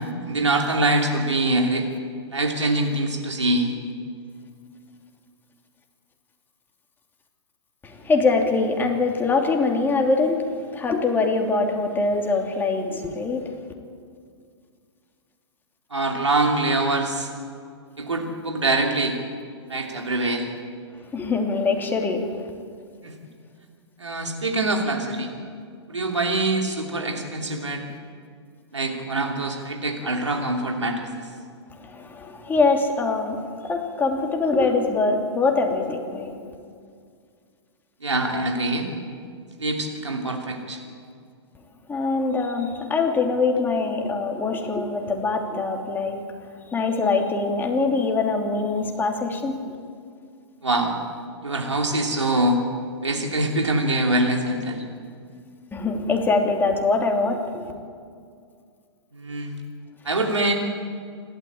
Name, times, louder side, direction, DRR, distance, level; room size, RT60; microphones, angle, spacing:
voice 1, 0.2-1.9 2.3-3.7 15.9-17.3 18.0-19.2 19.7-20.5 23.0-23.1 24.0-25.3 25.9-27.9 28.7-31.3 38.0-38.9 39.6-40.8 43.8-43.9 50.6-51.0 51.4-52.6 53.0-54.8 59.1-59.6 60.0-60.5, right 2 dB, 90° right, 2 dB, 2.9 m, -24 dB
voice 2, 7.8-13.5 21.1-22.3 31.8-36.3 41.9-46.2 46.7-49.6 55.7-57.7, left 3 dB, 15° left, 2 dB, 2.9 m, -23 dB
28.0 x 13.0 x 8.8 m, 2.2 s
figure-of-eight pair, 115°, 15 cm